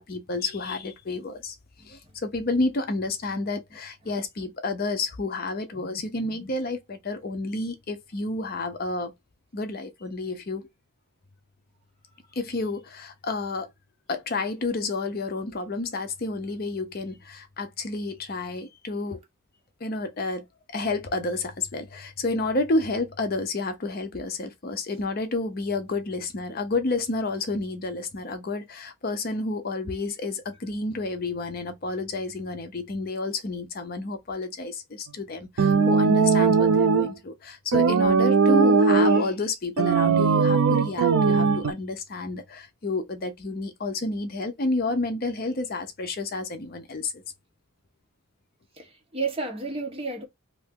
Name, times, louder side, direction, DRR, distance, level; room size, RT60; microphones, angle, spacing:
voice 1, 0.0-1.6 1.8-9.1 9.5-10.7 12.4-13.7 14.1-19.2 19.8-20.4 20.7-47.2, left 2 dB, 45° left, 0.6 m, -30 dB
sound 1, 35.6-37.1 37.7-39.3 39.8-41.7, right 5 dB, 90° right, 0.5 m, -19 dB
voice 2, 48.7-50.3, right 3 dB, 25° right, 1.0 m, -32 dB
2.7 x 2.6 x 3.5 m
head